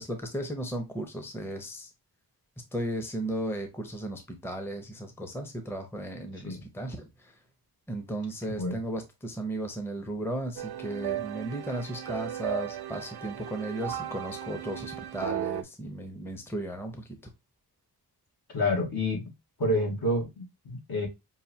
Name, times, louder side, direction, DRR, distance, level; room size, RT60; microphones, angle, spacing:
voice 1, 0.0-1.9 2.7-7.3 7.9-17.3, right 1 dB, 5° left, 0.6 m, -35 dB
sound 1, 10.6-15.6, right 12 dB, 90° right, 0.5 m, -35 dB
voice 2, 18.5-19.2 19.6-21.1, left 1 dB, 70° left, 1.9 m, -28 dB
5.5 x 2.6 x 2.6 m
wide cardioid pair, 145°, 38 cm